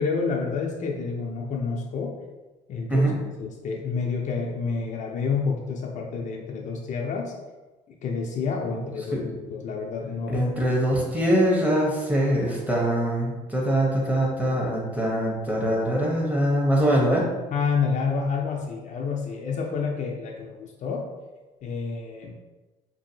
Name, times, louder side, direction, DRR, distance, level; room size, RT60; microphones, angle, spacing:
voice 1, 0.0-2.1 2.7-3.1 3.4-7.3 8.0-10.5 17.5-21.1 21.6-22.3, left 5 dB, 50° left, 0 dB, 0.4 m, -29 dB
voice 2, 10.3-17.3, right 1 dB, 10° right, -3 dB, 0.8 m, -23 dB
2.6 x 2.5 x 2.7 m, 1.2 s
cardioid pair, 110°, 17 cm